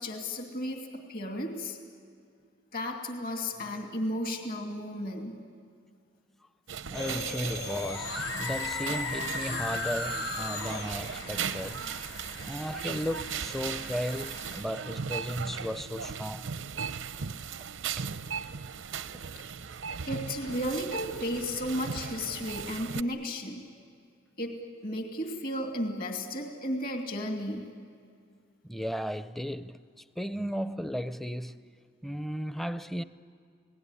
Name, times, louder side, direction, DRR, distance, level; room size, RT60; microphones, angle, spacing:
voice 1, 0.0-1.8 2.7-5.4 20.1-23.6 24.4-27.7, left 1 dB, 50° left, 2.6 m, -34 dB
sound 1, 6.7-23.0, right 6 dB, 85° right, 0.7 m, -37 dB
sound 2, 6.9-14.6, left 4 dB, 70° left, 3.8 m, -37 dB
voice 2, 6.9-12.1 12.4-16.6 28.6-29.8 30.2-31.6 32.0-33.0, equal, ahead, 0.5 m, -35 dB
28.0 x 18.5 x 9.8 m
head